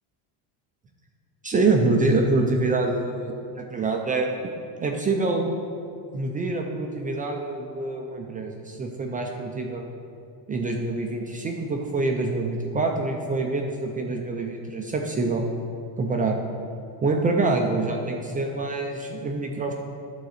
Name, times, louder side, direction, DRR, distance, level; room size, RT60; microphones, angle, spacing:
voice 1, 1.4-4.3 4.8-5.5 6.1-9.8 10.5-15.4 16.0-16.4 17.0-19.7, right 3 dB, 20° right, 1 dB, 0.3 m, -25 dB
11.0 x 3.8 x 6.4 m, 2.4 s
cardioid pair, 150°, 48 cm